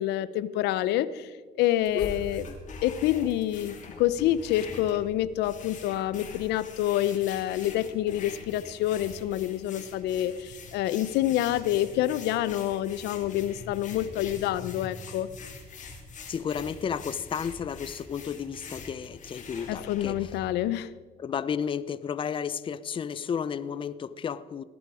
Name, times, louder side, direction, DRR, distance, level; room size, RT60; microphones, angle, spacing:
voice 1, 0.0-2.4 2.8-15.3 19.7-20.9, left 13 dB, 85° left, 16 dB, 0.6 m, -27 dB
sound 1, 1.8-20.4, left 4 dB, 50° left, 3.2 m, -44 dB
voice 2, 16.3-20.3 21.2-24.6, left 7 dB, 30° left, 16 dB, 0.5 m, -32 dB
18.0 x 11.0 x 4.9 m, 1.5 s
cardioid pair, 110°, 17 cm